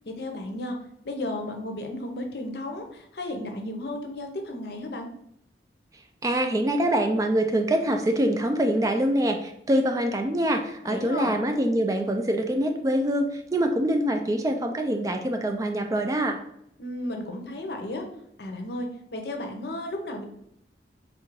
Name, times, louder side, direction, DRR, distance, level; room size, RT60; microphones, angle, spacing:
voice 1, 0.2-0.8 1.0-5.1 10.9-11.3 16.8-18.0 18.4-20.2, left 1 dB, 65° left, 4 dB, 0.7 m, -33 dB
voice 2, 6.2-16.4, right 1 dB, 20° right, 5 dB, 0.3 m, -24 dB
3.6 x 2.5 x 4.6 m, 0.76 s
head